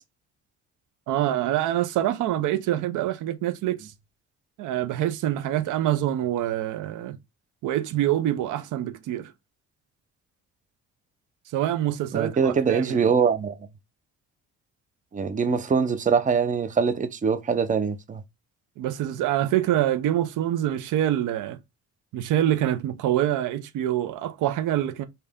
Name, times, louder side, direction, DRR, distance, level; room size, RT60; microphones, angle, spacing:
voice 1, 1.1-3.9 4.6-7.2 7.6-9.3 11.5-13.1 18.8-21.6 22.1-25.1, right 12 dB, 85° right, 0.6 m, -25 dB
voice 2, 12.1-13.5 15.1-18.2, right 6 dB, 25° right, 0.6 m, -23 dB
3.3 x 2.8 x 3.5 m
cardioid pair, 90°, 30 cm